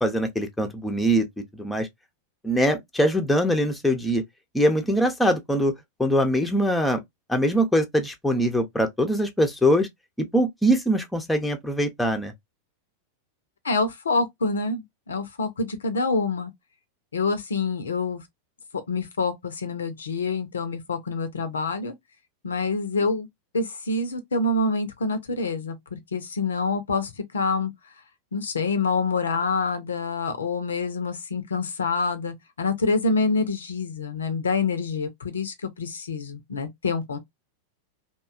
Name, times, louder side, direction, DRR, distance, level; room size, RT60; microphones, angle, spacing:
voice 1, 0.0-1.3 1.6-1.9 2.4-4.2 4.5-5.7 6.0-7.0 7.3-9.9 10.3-12.3, equal, 5° left, 0.6 m, -22 dB
voice 2, 13.6-16.5 17.1-18.2 18.7-21.9 22.4-23.3 23.5-27.7 28.3-37.2, left 3 dB, 70° left, 0.5 m, -26 dB
2.6 x 2.2 x 2.3 m
figure-of-eight pair, 90°, 0 cm